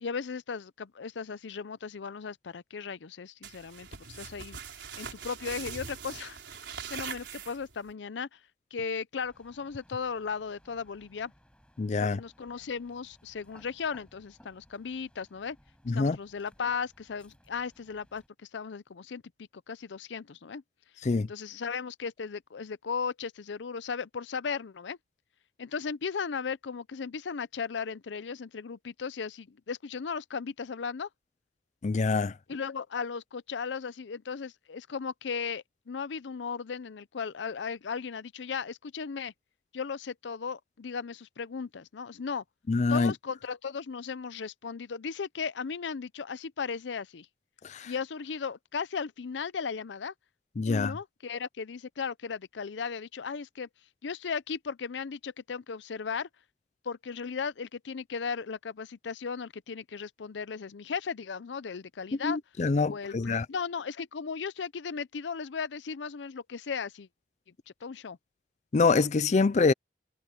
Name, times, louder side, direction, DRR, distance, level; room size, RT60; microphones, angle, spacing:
voice 1, 0.0-6.4 6.9-8.4 8.7-11.3 12.0-15.6 15.9-18.2 18.5-19.2 19.7-20.6 21.2-25.0 25.6-31.1 32.5-39.3 39.7-42.4 42.9-47.3 47.8-50.1 50.7-53.7 54.0-56.3 56.8-62.4 62.9-67.1 67.8-68.2, left 5 dB, 90° left, 0.6 m, -36 dB
sound 1, 3.4-7.9, right 6 dB, 85° right, 4.2 m, -42 dB
sound 2, 9.2-18.3, equal, 5° left, 6.0 m, -62 dB
voice 2, 11.8-12.2 15.9-16.2 21.0-21.3 31.8-32.3 42.7-43.1 47.6-47.9 50.6-50.9 62.2-63.5 68.7-69.7, left 4 dB, 40° left, 0.4 m, -25 dB
head